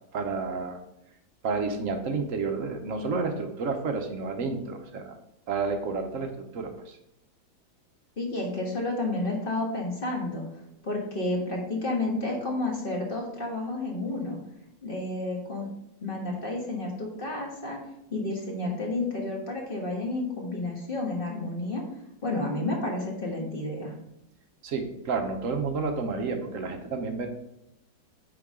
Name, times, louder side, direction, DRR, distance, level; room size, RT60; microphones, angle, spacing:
voice 1, 0.1-0.8 1.4-5.2 5.5-7.0 24.6-27.3, right 4 dB, 55° right, 6 dB, 1.0 m, -30 dB
voice 2, 8.2-10.4 10.8-14.4 14.8-15.7 16.0-17.8 18.1-21.8 22.2-23.9, left 2 dB, 30° left, -1 dB, 1.4 m, -31 dB
8.7 x 4.7 x 3.7 m, 0.85 s
omnidirectional pair, 2.1 m